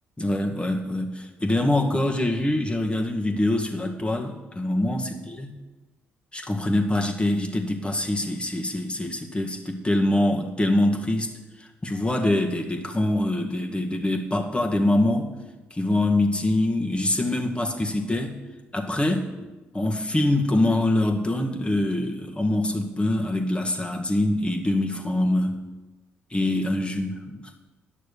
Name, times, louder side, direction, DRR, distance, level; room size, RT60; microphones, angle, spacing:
voice 1, 0.2-5.6 6.3-11.3 11.8-15.3 15.7-18.4 18.7-25.6 26.3-27.5, left 1 dB, 20° left, 2 dB, 1.9 m, -24 dB
11.0 x 6.6 x 6.9 m, 1.2 s
hypercardioid pair, 50°, 5 cm